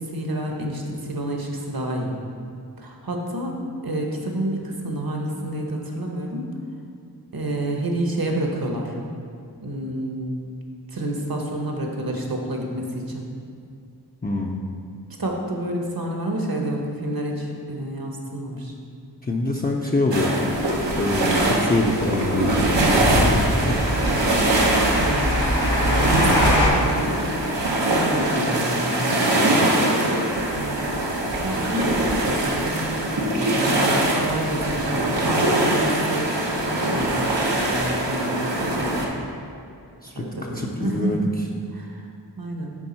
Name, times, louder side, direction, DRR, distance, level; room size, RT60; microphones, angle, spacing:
voice 1, 0.0-2.2 2.8-6.5 7.3-8.9 9.6-10.5 10.9-13.3 15.2-18.7 21.3-21.4 24.9-29.2 30.5-30.8 31.4-36.4 36.8-39.0 40.2-41.3 41.7-42.1 42.4-42.7, right 1 dB, 55° right, 1 dB, 1.1 m, -29 dB
voice 2, 14.2-14.6 19.2-20.5 21.0-23.8 29.4-29.8 40.0-41.3, left 2 dB, 20° left, -2 dB, 0.5 m, -25 dB
sound 1, 20.1-39.1, right 1 dB, 90° right, 1.0 m, -22 dB
sound 2, 20.5-26.7, equal, 70° left, 1.5 m, -25 dB
10.0 x 3.5 x 4.3 m, 2.4 s
wide cardioid pair, 50°, 42 cm